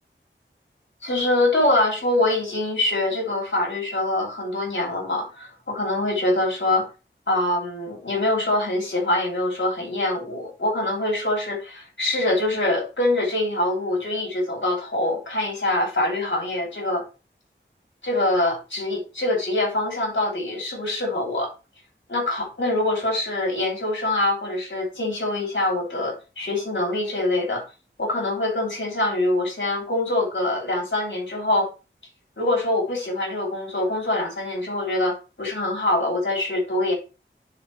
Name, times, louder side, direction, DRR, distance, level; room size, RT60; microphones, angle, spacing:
voice 1, 1.0-6.9 7.3-17.0 18.0-21.5 22.1-27.6 28.0-31.7 32.4-36.9, left 1 dB, 65° left, 0 dB, 3.5 m, -24 dB
10.5 x 4.3 x 3.3 m, 0.31 s
wide cardioid pair, 50°, 20 cm